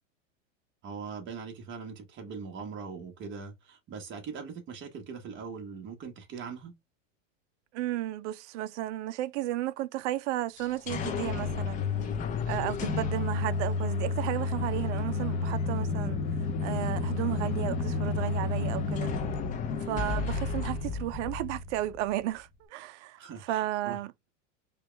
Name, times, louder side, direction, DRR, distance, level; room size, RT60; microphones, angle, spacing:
voice 1, 0.8-6.7 19.7-20.0 23.2-24.0, right 5 dB, 30° right, 1.3 m, -41 dB
voice 2, 7.7-11.8 12.5-16.2 16.6-19.1 19.9-24.1, right 14 dB, 65° right, 0.5 m, -33 dB
sound 1, 10.6-22.2, left 4 dB, 20° left, 0.5 m, -31 dB
4.6 x 2.3 x 3.2 m
supercardioid pair, 140°, 39 cm